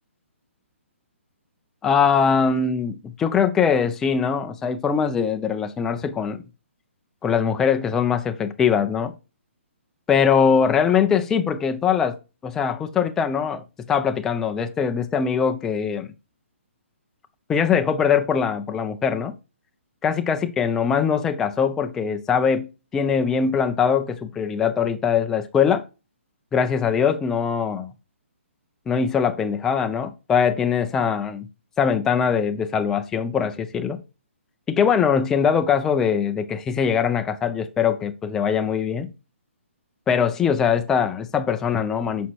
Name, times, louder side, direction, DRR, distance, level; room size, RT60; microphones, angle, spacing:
voice 1, 1.8-6.4 7.2-9.1 10.1-12.2 12.4-13.6 13.9-16.1 17.5-19.3 20.0-22.7 22.9-25.8 26.5-27.9 28.9-31.5 31.8-34.0 34.7-39.1 40.1-42.3, left 7 dB, 5° left, 0.3 m, -22 dB
6.1 x 5.9 x 2.7 m
hypercardioid pair, 165°, 7 cm